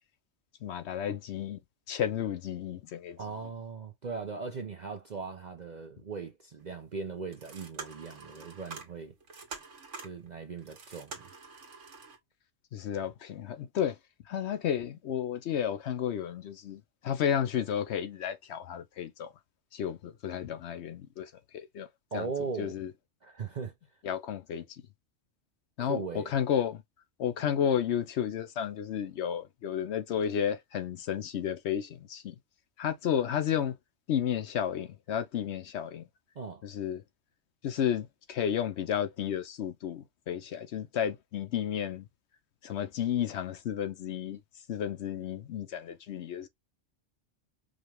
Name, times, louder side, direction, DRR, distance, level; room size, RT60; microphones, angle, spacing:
voice 1, 0.6-1.6 1.9-3.2 12.7-14.0 14.3-19.3 19.7-21.9 22.1-22.3 22.6-22.9 24.0-24.8 25.8-26.8 27.2-32.4 32.8-33.7 34.1-36.0 36.6-37.0 37.6-42.1 42.6-44.4 44.7-46.5, left 9 dB, 65° left, 0.8 m, -32 dB
voice 2, 3.2-9.1 10.0-11.2 22.1-22.8 23.2-23.7 25.8-26.3 36.4-36.7, right 4 dB, 45° right, 0.6 m, -39 dB
sound 1, 6.6-6.7 7.2-12.2, right 4 dB, 70° right, 1.5 m, -46 dB
5.1 x 2.3 x 3.0 m
omnidirectional pair, 1.3 m